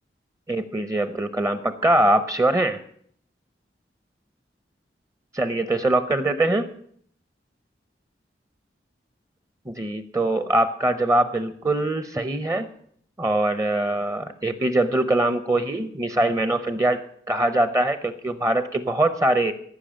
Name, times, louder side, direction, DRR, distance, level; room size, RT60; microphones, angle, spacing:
voice 1, 0.5-2.8 5.3-6.7 9.7-12.7 13.2-17.0 17.3-19.5, right 1 dB, 20° right, 11 dB, 0.6 m, -22 dB
15.0 x 5.8 x 8.8 m, 0.63 s
head